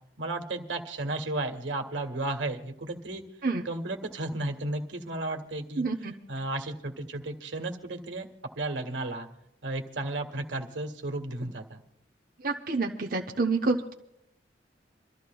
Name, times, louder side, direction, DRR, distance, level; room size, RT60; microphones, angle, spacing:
voice 1, 0.2-3.2 3.6-5.8 6.3-8.3 8.5-9.3 9.6-11.8, right 2 dB, 90° right, 4 dB, 1.6 m, -33 dB
voice 2, 5.8-6.1 12.4-13.9, right 3 dB, 50° right, 1 dB, 0.8 m, -28 dB
27.5 x 13.5 x 2.3 m, 0.82 s
head